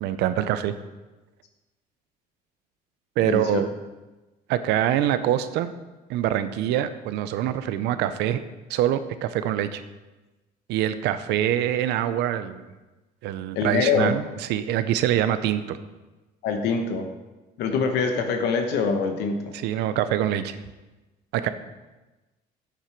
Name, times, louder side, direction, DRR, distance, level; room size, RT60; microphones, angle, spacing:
voice 1, 0.0-0.7 3.2-3.7 4.5-5.7 6.1-8.4 8.7-9.8 10.7-12.7 13.2-15.8 19.5-20.6 21.3-21.5, right 11 dB, 85° right, 12 dB, 0.6 m, -24 dB
voice 2, 3.2-3.6 13.5-14.1 16.4-17.1 17.6-19.5, left 5 dB, 85° left, 5 dB, 1.0 m, -24 dB
9.0 x 7.3 x 4.6 m, 1.1 s
cardioid pair, 110°, 17 cm